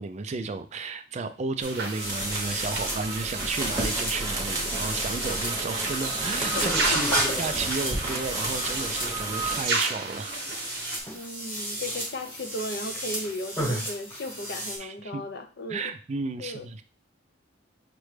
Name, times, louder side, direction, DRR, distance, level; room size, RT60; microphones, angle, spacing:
voice 1, 0.0-7.0 7.4-10.4 14.8-15.2 15.7-16.8, right 4 dB, 35° right, 9 dB, 0.3 m, -33 dB
sound 1, 1.6-14.8, right 1 dB, 10° left, 1.1 m, -32 dB
sound 2, 1.6-11.0, right 3 dB, 55° right, 0.8 m, -34 dB
sound 3, 1.9-9.6, right 2 dB, 15° right, 0.9 m, -33 dB
voice 2, 6.5-7.4 11.1-15.8 16.4-16.7, left 1 dB, 55° left, 5 dB, 0.6 m, -36 dB
5.9 x 2.1 x 3.2 m, 0.36 s
head